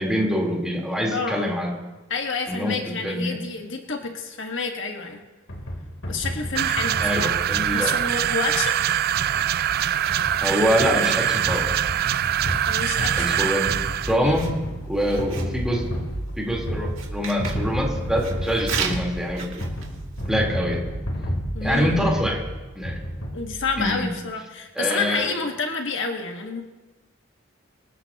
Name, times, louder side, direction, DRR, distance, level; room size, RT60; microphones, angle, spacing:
voice 1, 0.0-1.7 2.5-2.8 3.0-3.4 7.0-7.9 10.4-11.6 13.2-13.7 14.1-14.4 14.9-15.8 16.4-19.6 20.3-20.8 21.6-22.4 22.7-23.0 23.8-24.1 24.8-25.3, equal, 5° right, -3 dB, 3.7 m, -24 dB
voice 2, 1.1-1.5 2.1-5.2 6.1-7.4 7.7-8.8 12.7-13.5 14.1-14.4 15.1-15.3 21.5-22.0 23.3-26.6, left 4 dB, 65° left, 3 dB, 1.6 m, -29 dB
sound 1, 5.5-23.9, equal, 80° left, 3.4 m, -32 dB
sound 2, 6.6-14.2, right 11 dB, 50° right, 0.4 m, -23 dB
Writing, 9.3-20.4, right 6 dB, 80° right, 2.4 m, -38 dB
26.0 x 14.5 x 2.9 m, 1.2 s
head